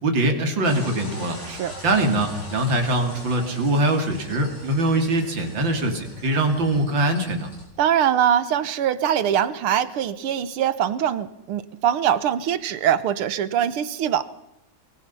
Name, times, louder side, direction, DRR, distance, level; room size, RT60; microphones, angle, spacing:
voice 1, 0.0-1.4 1.8-7.5, right 1 dB, 60° right, 5 dB, 3.6 m, -22 dB
sound 1, 0.6-7.7, left 2 dB, 45° left, 7.4 m, -40 dB
voice 2, 7.8-14.2, right 9 dB, 85° right, 14 dB, 2.0 m, -22 dB
23.0 x 22.5 x 5.7 m, 0.81 s
omnidirectional pair, 2.4 m